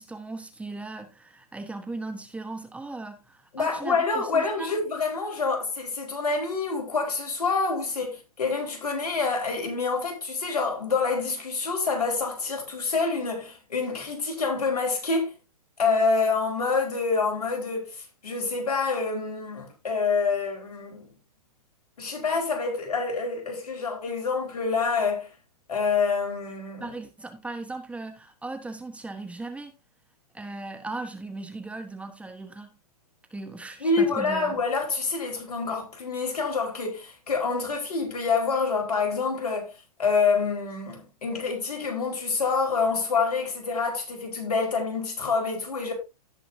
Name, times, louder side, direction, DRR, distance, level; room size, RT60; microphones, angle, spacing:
voice 1, 0.0-4.7 26.8-29.8 30.3-32.7 33.3-34.6, right 3 dB, 5° right, 1.2 m, -37 dB
voice 2, 3.5-15.3 15.8-21.1 22.0-25.3 25.7-26.9 33.8-39.7 40.0-45.9, left 4 dB, 75° left, 4.6 m, -27 dB
17.0 x 5.7 x 2.7 m
hypercardioid pair, 125°, 20 cm